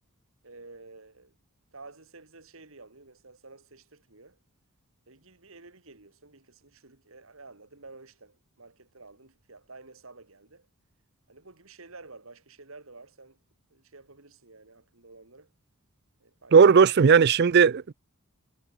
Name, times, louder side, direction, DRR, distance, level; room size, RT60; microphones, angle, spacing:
voice 1, 0.4-1.3 1.7-4.4 5.1-10.7 11.3-13.4 13.7-15.5 16.2-16.7, right 3 dB, 65° right, 2.5 m, -51 dB
voice 2, 16.5-17.9, right 6 dB, 50° right, 0.4 m, -17 dB
head